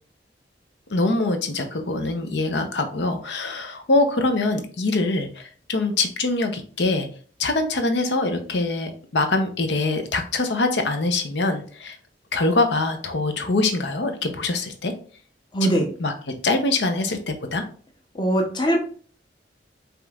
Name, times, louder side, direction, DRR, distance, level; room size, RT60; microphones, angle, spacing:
voice 1, 0.9-7.1 7.4-12.0 12.3-14.9 15.6-15.7 16.0-17.6, left 2 dB, 75° left, 7 dB, 0.7 m, -24 dB
voice 2, 15.5-15.9 18.2-18.8, right 1 dB, 25° left, 2 dB, 0.8 m, -21 dB
5.1 x 3.0 x 2.4 m, 0.43 s
head